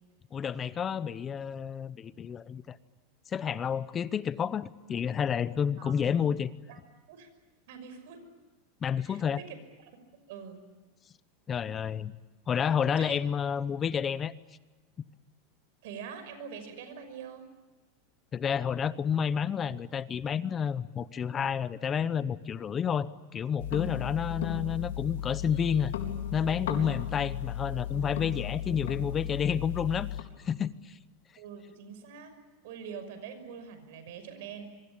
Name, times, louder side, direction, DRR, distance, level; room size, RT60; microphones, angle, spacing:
voice 1, 0.3-2.8 3.3-6.5 8.8-9.4 11.5-12.1 12.5-14.3 18.3-25.9 26.3-30.1 30.4-31.0, left 7 dB, 20° left, 17 dB, 0.8 m, -30 dB
voice 2, 7.7-8.2 9.0-9.6 10.3-10.6 12.9-13.2 15.8-17.5 24.7-24.9 26.8-27.0 31.4-32.3 32.6-34.8, right 7 dB, 70° right, 9 dB, 5.8 m, -44 dB
sound 1, 23.6-30.2, left 11 dB, 90° left, 3.9 m, -35 dB
26.0 x 23.5 x 8.8 m, 1.2 s
supercardioid pair, 150°, 0 cm